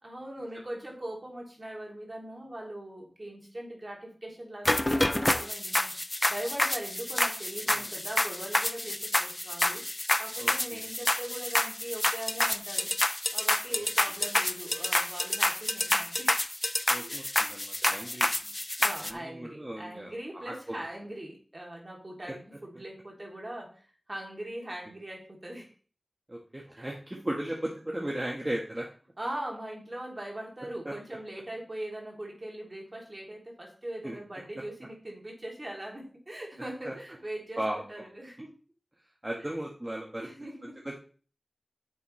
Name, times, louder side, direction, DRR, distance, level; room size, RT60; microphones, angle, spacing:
voice 1, 0.0-9.8 10.2-12.9 13.3-16.4 16.9-17.5 17.8-18.1 18.4-18.5 18.8-25.7 26.8-26.9 27.1-27.2 29.2-37.6 37.9-38.5 40.2-40.8, right 1 dB, 40° right, -1 dB, 3.1 m, -41 dB
sound 1, 4.6-19.1, left 1 dB, 25° left, 0.5 m, -28 dB
voice 2, 10.4-10.8 13.7-13.8 16.9-18.3 19.0-20.7 22.3-22.4 22.7-22.8 26.3-28.9 30.8-30.9 34.0-34.2 34.5-34.6 36.8-36.9 37.6-38.0 39.2-40.3 40.8-40.9, right 1 dB, 25° right, -2 dB, 1.6 m, -36 dB
9.9 x 7.0 x 3.3 m, 0.39 s
wide cardioid pair, 50°, 0 cm